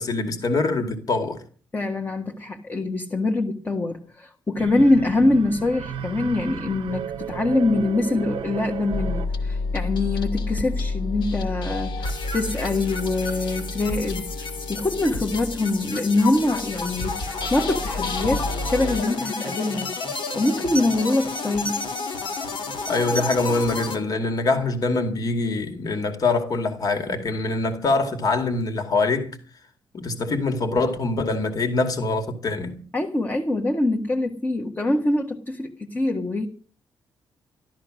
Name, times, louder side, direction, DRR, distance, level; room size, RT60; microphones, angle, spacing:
voice 1, 0.0-1.4 22.9-29.4 29.9-32.8, left 3 dB, 50° left, 2.3 m, -24 dB
voice 2, 1.7-19.9 20.3-21.8 32.9-36.5, left 2 dB, 20° left, 1.5 m, -24 dB
sound 1, 4.6-9.5, right 8 dB, 90° right, 0.8 m, -34 dB
sound 2, 8.9-19.0, left 2 dB, 70° left, 2.2 m, -30 dB
sound 3, 12.0-24.0, left 3 dB, 85° left, 3.5 m, -31 dB
13.5 x 13.0 x 6.3 m
wide cardioid pair, 155°, 8 cm